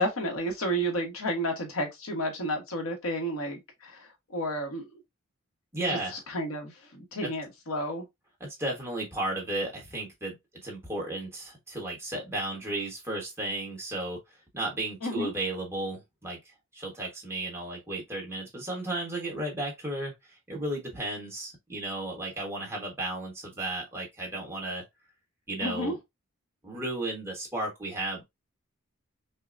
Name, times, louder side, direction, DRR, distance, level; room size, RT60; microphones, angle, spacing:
voice 1, 0.0-4.9 5.9-6.0 6.3-8.0 15.0-15.3 25.6-25.9, equal, 85° left, 1.3 m, -31 dB
voice 2, 5.7-6.2 7.2-7.3 8.4-10.3 10.6-14.2 14.5-24.8 25.5-26.0 26.6-28.2, right 1 dB, 10° right, 1.4 m, -34 dB
5.5 x 2.3 x 2.6 m
head